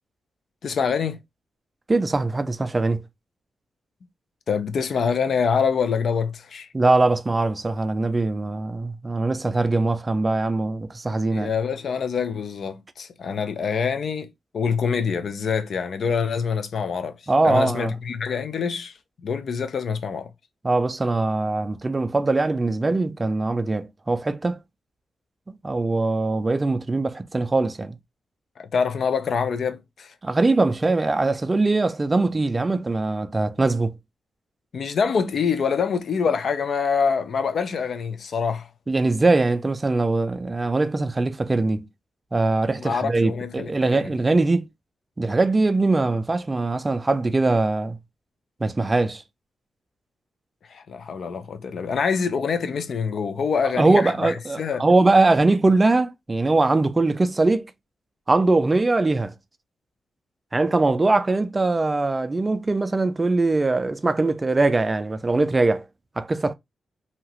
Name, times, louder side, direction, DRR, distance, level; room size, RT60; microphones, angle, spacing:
voice 1, 0.6-1.2 4.5-6.7 11.3-14.3 14.5-17.2 17.4-18.9 19.2-20.3 28.6-30.1 34.7-38.7 42.8-44.1 50.7-54.9, left 6 dB, 60° left, 0.4 m, -25 dB
voice 2, 1.9-3.0 6.7-11.5 17.3-17.9 20.6-24.6 25.6-27.9 30.2-33.9 38.9-41.8 42.3-44.7 45.2-48.0 48.6-49.2 53.8-57.7 58.3-59.3 60.5-65.8 66.2-66.5, right 3 dB, 20° right, 0.3 m, -21 dB
2.8 x 2.4 x 3.0 m
wide cardioid pair, 125°, 0 cm